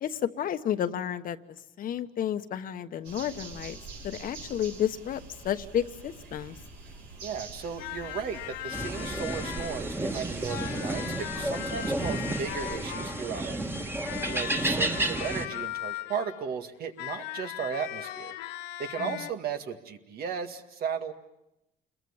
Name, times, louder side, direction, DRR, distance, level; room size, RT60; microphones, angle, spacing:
voice 1, 0.0-3.8 4.0-6.6 19.0-19.2, left 10 dB, 55° left, 10 dB, 1.2 m, -31 dB
sound 1, 3.0-12.8, right 3 dB, 85° right, 5.9 m, -46 dB
voice 2, 7.2-13.6 14.3-18.3 18.8-21.1, right 6 dB, 65° right, 6 dB, 2.0 m, -35 dB
sound 2, 7.8-10.0 10.5-13.5 14.0-16.5 17.0-19.3, left 14 dB, 90° left, 0.9 m, -39 dB
sound 3, 8.7-15.5, right 1 dB, 15° right, 1.9 m, -32 dB
28.5 x 22.0 x 7.2 m, 0.89 s
cardioid pair, 110°, 17 cm